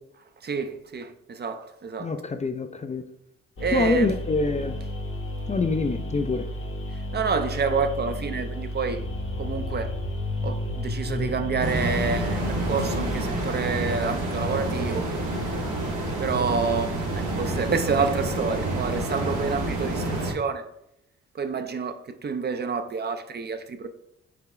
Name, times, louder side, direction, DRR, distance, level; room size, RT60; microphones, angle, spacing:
voice 1, 0.4-2.1 3.6-4.1 7.1-9.0 9.4-9.9 10.4-15.0 16.2-20.7 21.3-23.9, right 5 dB, 35° right, 0.5 m, -28 dB
voice 2, 2.0-3.0 3.7-4.8 5.5-6.5, left 3 dB, 25° left, 0.4 m, -25 dB
sound 1, 3.6-13.2, left 1 dB, 45° left, 0.9 m, -32 dB
sound 2, 11.6-20.3, right 2 dB, 90° right, 1.3 m, -28 dB
4.9 x 2.3 x 4.8 m
supercardioid pair, 60°, 29 cm